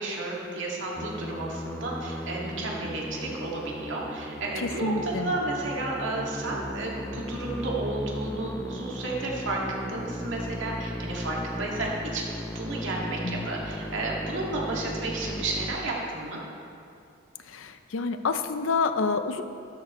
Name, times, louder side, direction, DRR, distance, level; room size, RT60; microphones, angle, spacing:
voice 1, 0.0-16.4, right 2 dB, 70° right, -3 dB, 2.1 m, -32 dB
Musical instrument, 1.0-15.8, left 1 dB, 10° left, 0.5 m, -36 dB
voice 2, 4.6-5.3 13.2-13.5 17.5-19.4, left 4 dB, 85° left, 9 dB, 0.6 m, -28 dB
12.5 x 12.0 x 3.1 m, 2.5 s
head